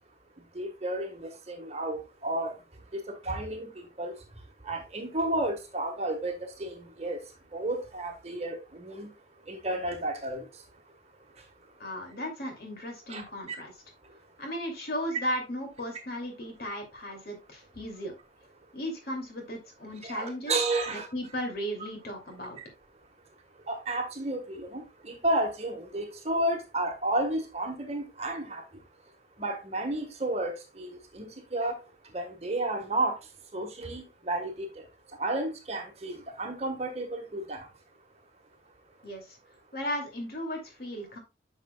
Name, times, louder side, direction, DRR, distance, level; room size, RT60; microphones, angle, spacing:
voice 1, 0.5-2.6 2.9-4.2 4.6-7.2 7.5-9.1 9.5-10.5 13.1-13.2 20.0-21.1 22.6-22.7 23.7-28.7 29.4-31.8 32.1-33.2 33.5-34.8 35.2-37.7, right 1 dB, 35° right, 1.3 m, -32 dB
voice 2, 11.8-13.7 14.4-18.1 18.7-20.5 20.9-22.6 39.0-39.4 39.7-41.2, equal, 55° left, 2.5 m, -36 dB
9.3 x 6.1 x 2.2 m
head